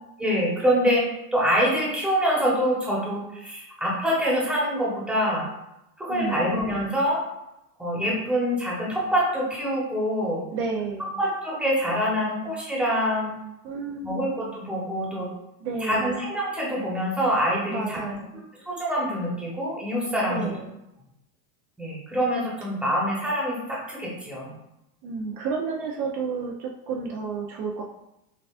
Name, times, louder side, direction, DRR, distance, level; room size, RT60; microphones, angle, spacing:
voice 1, 0.2-5.5 6.0-7.2 7.8-10.4 11.2-13.3 14.0-15.3 15.8-18.2 18.7-20.5 21.8-24.5, equal, ahead, -5 dB, 1.0 m, -25 dB
voice 2, 6.1-6.5 10.5-11.2 13.6-14.3 15.6-16.2 17.7-18.3 20.2-20.8 25.0-27.8, right 4 dB, 50° right, -1 dB, 0.5 m, -31 dB
5.8 x 2.4 x 2.4 m, 0.89 s
supercardioid pair, 130°, 45 cm